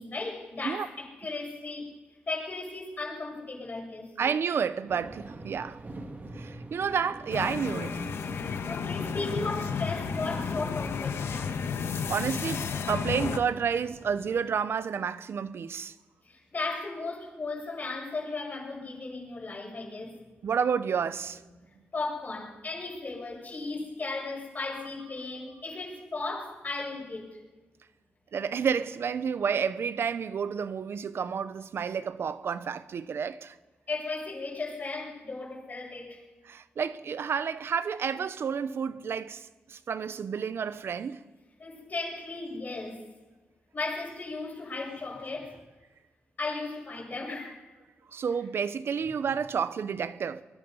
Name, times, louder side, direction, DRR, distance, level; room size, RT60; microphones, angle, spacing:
voice 1, 0.0-2.0 2.3-4.1 8.7-11.6 16.2-20.1 21.9-27.4 33.9-36.2 41.6-43.0 43.7-45.6 46.4-47.6, left 3 dB, 40° left, 7.4 m, -36 dB
voice 2, 4.2-5.8 6.3-8.2 12.1-15.9 20.4-21.4 28.3-33.6 36.5-41.2 48.1-50.4, right 6 dB, 70° right, 0.9 m, -30 dB
sound 1, 4.9-14.4, right 2 dB, 40° right, 2.8 m, -45 dB
sound 2, 7.3-13.4, left 6 dB, 75° left, 1.4 m, -32 dB
23.0 x 20.5 x 5.6 m
cardioid pair, 85°, 4 cm